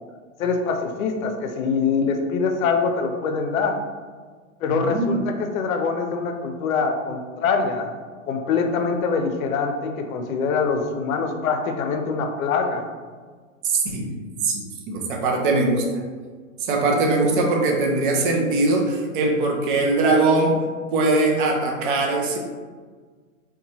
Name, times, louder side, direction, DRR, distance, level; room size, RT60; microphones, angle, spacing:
voice 1, 0.4-3.8 4.6-7.9 8.3-12.9, left 5 dB, 75° left, 5 dB, 0.6 m, -24 dB
voice 2, 4.7-5.1 13.6-14.1 14.4-14.5 14.9-15.8 16.7-20.6 20.9-22.4, right 2 dB, 40° right, 0 dB, 0.4 m, -21 dB
2.8 x 2.2 x 2.6 m, 1.5 s
hypercardioid pair, 150°, 41 cm